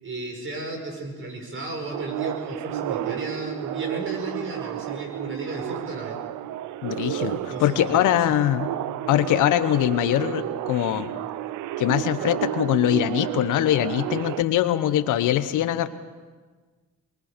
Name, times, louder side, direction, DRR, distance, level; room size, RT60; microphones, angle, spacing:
voice 1, 0.0-6.2 7.5-8.2, right 2 dB, 40° right, 2 dB, 5.9 m, -34 dB
sound 1, 1.9-14.4, right 13 dB, 80° right, 0.6 m, -31 dB
voice 2, 6.8-8.7 9.1-11.1 11.8-15.9, left 12 dB, 85° left, 12 dB, 1.0 m, -22 dB
23.5 x 23.0 x 5.2 m, 1.4 s
cardioid pair, 90°, 30 cm